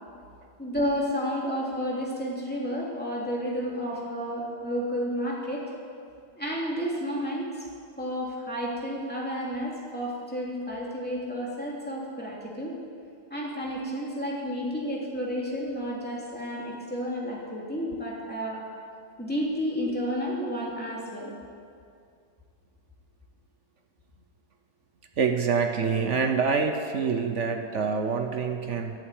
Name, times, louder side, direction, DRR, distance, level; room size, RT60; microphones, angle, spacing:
voice 1, 0.6-5.6 6.3-7.7 8.0-12.7 13.3-18.6 19.2-21.3, equal, 5° left, -4 dB, 2.7 m, -31 dB
voice 2, 25.2-28.9, right 5 dB, 55° right, 5 dB, 0.8 m, -26 dB
14.0 x 8.0 x 9.2 m, 2.3 s
omnidirectional pair, 2.2 m